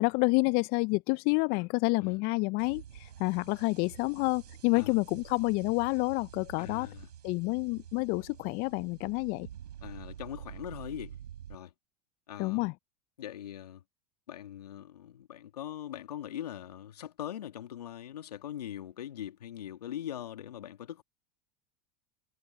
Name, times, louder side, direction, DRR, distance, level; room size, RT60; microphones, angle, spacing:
voice 1, 0.0-6.9 7.2-9.5 12.4-12.7, left 27 dB, 50° left, 0.5 m, -29 dB
sound 1, 2.6-11.6, right 10 dB, 85° right, 5.6 m, -48 dB
voice 2, 6.6-7.1 9.8-11.1 11.5-11.7 12.3-12.7 13.2-13.8 14.3-21.0, left 11 dB, 85° left, 2.2 m, -41 dB
hypercardioid pair, 90°, 20 cm